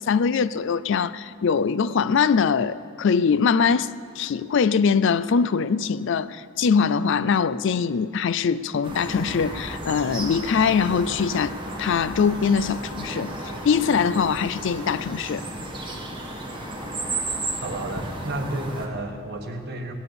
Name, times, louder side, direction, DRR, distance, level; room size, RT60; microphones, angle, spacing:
voice 1, 0.0-3.9 4.2-13.3 13.6-15.4, left 6 dB, 60° left, 0.4 m, -22 dB
sound 1, 8.8-18.9, right 1 dB, 25° right, 1.6 m, -33 dB
voice 2, 17.6-19.9, right 1 dB, 50° right, 1.4 m, -31 dB
18.0 x 8.9 x 6.7 m
head